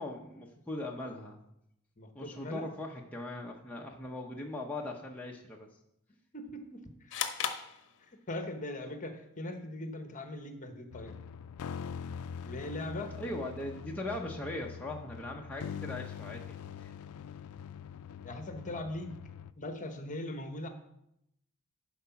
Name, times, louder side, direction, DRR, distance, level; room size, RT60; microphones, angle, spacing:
voice 1, 0.0-1.4 2.1-5.7 13.2-16.9, left 1 dB, 5° left, -1 dB, 0.8 m, -40 dB
voice 2, 2.0-2.7 6.3-7.1 8.1-11.2 12.4-13.1 18.2-19.2 19.6-20.7, left 1 dB, 35° left, 6 dB, 1.1 m, -40 dB
sound 1, 7.1-8.5, left 8 dB, 60° left, 0.8 m, -36 dB
sound 2, 10.9-19.5, left 7 dB, 80° left, 0.4 m, -43 dB
11.0 x 4.8 x 5.8 m, 0.79 s
head